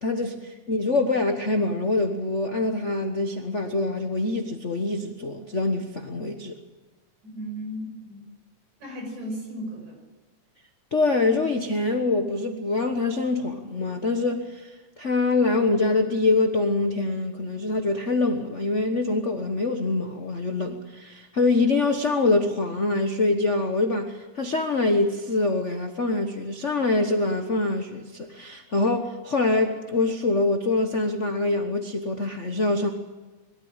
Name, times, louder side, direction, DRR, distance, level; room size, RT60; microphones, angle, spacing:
voice 1, 0.0-6.5 10.9-32.9, left 2 dB, 80° left, 5 dB, 0.6 m, -25 dB
voice 2, 7.2-8.3 8.8-10.0, equal, 70° right, 2 dB, 6.8 m, -35 dB
22.5 x 13.5 x 8.9 m, 1.2 s
omnidirectional pair, 3.4 m